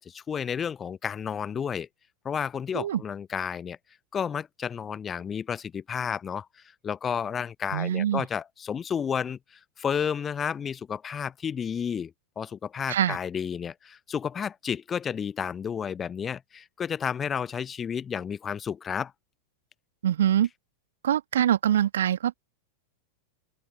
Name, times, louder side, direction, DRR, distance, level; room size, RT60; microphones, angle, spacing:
voice 1, 0.0-1.9 2.2-3.8 4.1-6.5 6.8-12.1 12.4-19.1, left 7 dB, 20° left, 0.7 m, -31 dB
voice 2, 7.7-8.2 12.9-13.2 20.0-20.5 21.0-22.3, right 10 dB, 60° right, 1.9 m, -24 dB
open air
figure-of-eight pair, 90°, 0 cm